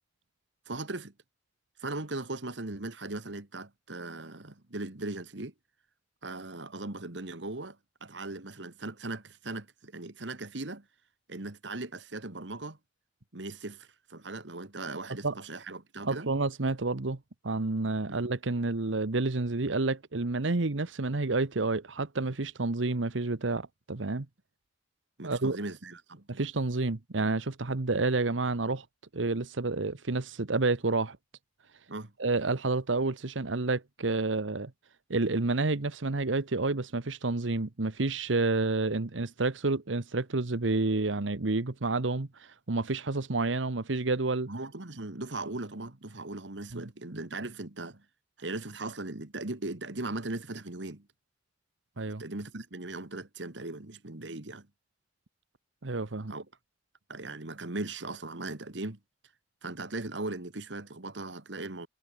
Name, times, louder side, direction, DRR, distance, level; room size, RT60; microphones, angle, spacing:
voice 1, 0.7-1.1 1.8-5.5 6.2-10.9 11.3-12.8 13.3-16.3 18.1-18.2 25.2-26.3 31.9-32.1 44.5-48.0 48.4-51.1 52.2-54.7 56.3-56.5 57.1-59.0 59.6-61.9, right 2 dB, 70° right, 1.9 m, -38 dB
voice 2, 16.0-17.2 17.4-24.3 25.2-25.6 26.3-28.8 29.1-31.2 32.2-34.7 35.1-44.5 46.7-46.8 52.0-52.2 55.8-56.3, right 3 dB, 90° right, 1.1 m, -29 dB
head